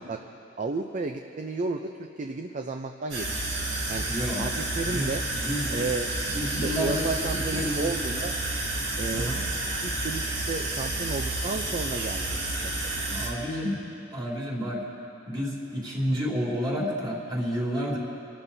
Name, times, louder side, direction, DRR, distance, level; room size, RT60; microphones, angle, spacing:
voice 1, 0.6-3.4 3.9-4.1 4.4-5.2 5.7-6.1 6.4-8.3 9.0-9.3 9.8-12.3 12.6-12.8, right 3 dB, 40° right, 5 dB, 0.5 m, -32 dB
sound 1, 3.1-13.3, right 2 dB, 80° right, 3.2 m, -30 dB
voice 2, 4.1-4.5 4.8-5.9 6.3-7.9 9.1-9.4 13.1-13.8 14.1-14.8 15.3-18.0, equal, 25° right, -3 dB, 2.7 m, -30 dB
27.5 x 13.0 x 2.7 m, 2.7 s
head